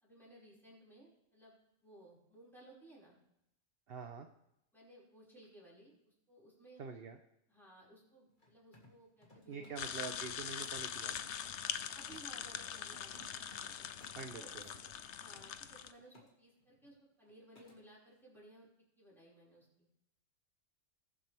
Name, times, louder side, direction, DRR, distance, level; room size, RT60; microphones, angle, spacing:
voice 1, 0.0-3.2 4.7-6.8 7.5-10.1 11.9-13.9 14.4-14.7 15.2-18.7 19.0-19.9, right 1 dB, ahead, -7 dB, 5.2 m, -59 dB
voice 2, 3.9-4.3 6.8-7.2 9.5-11.3 14.1-14.8, right 5 dB, 50° right, 6 dB, 0.9 m, -46 dB
Mechanisms, 8.3-12.4 12.8-14.3 14.9-16.3 16.6-16.9 17.2-17.8, left 1 dB, 35° left, 2.2 m, -63 dB
sound 1, 9.8-15.9, left 9 dB, 65° left, 0.9 m, -43 dB
20.5 x 7.5 x 3.4 m, 0.83 s
omnidirectional pair, 1.4 m